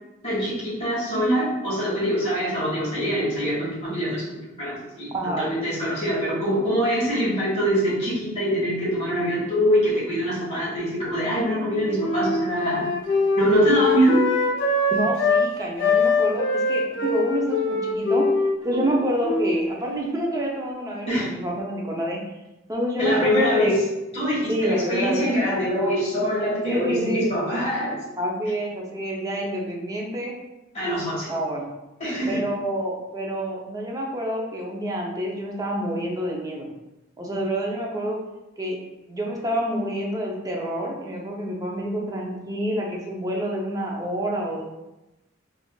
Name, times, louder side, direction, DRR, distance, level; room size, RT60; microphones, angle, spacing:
voice 1, 0.2-12.9 13.3-14.3 21.1-21.3 23.0-23.8 24.1-28.0 30.7-31.3 32.0-32.4, equal, 35° left, -9 dB, 1.5 m, -24 dB
voice 2, 5.1-5.5 14.9-18.3 18.6-22.2 22.7-23.8 24.5-25.3 26.7-27.4 28.2-30.3 31.3-31.7 32.3-36.7 37.2-38.2 38.6-38.8 39.1-44.6, equal, 20° right, -2 dB, 0.5 m, -27 dB
Wind instrument woodwind instrument, 11.5-15.5 15.8-20.3, left 3 dB, 65° left, 0.6 m, -23 dB
3.6 x 2.5 x 2.3 m, 0.97 s
head